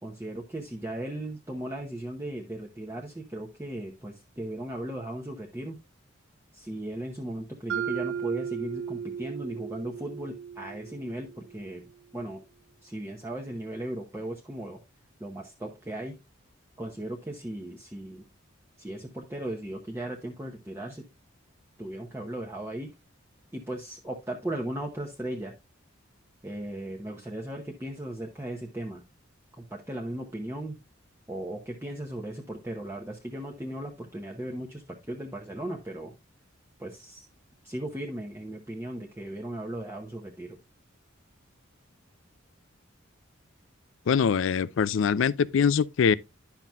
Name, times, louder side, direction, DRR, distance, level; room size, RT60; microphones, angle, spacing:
voice 1, 0.0-5.8 6.5-11.8 12.1-12.4 12.8-14.8 15.2-16.2 16.8-18.3 18.8-21.1 21.8-22.9 23.5-25.5 26.4-29.0 29.6-30.8 31.3-36.1 36.8-37.3 37.6-40.6, right 1 dB, 10° right, 0.8 m, -37 dB
Mallet percussion, 7.7-11.7, right 8 dB, 65° right, 0.7 m, -35 dB
voice 2, 44.1-46.1, left 6 dB, 65° left, 0.4 m, -23 dB
10.5 x 5.8 x 2.3 m
head